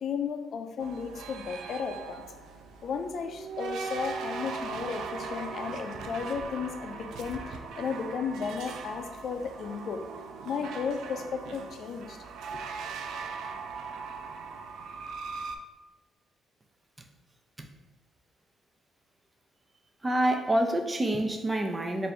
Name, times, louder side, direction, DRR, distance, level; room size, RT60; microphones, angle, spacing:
voice 1, 0.0-2.2 2.8-10.0 10.4-12.2 12.5-12.6, left 6 dB, 60° left, 6 dB, 0.4 m, -34 dB
sound 1, 0.8-15.6, right 5 dB, 80° right, 0.3 m, -39 dB
voice 2, 20.0-22.1, right 1 dB, 20° right, 5 dB, 0.5 m, -27 dB
3.3 x 2.6 x 4.2 m, 1.1 s
cardioid pair, 90°, 0 cm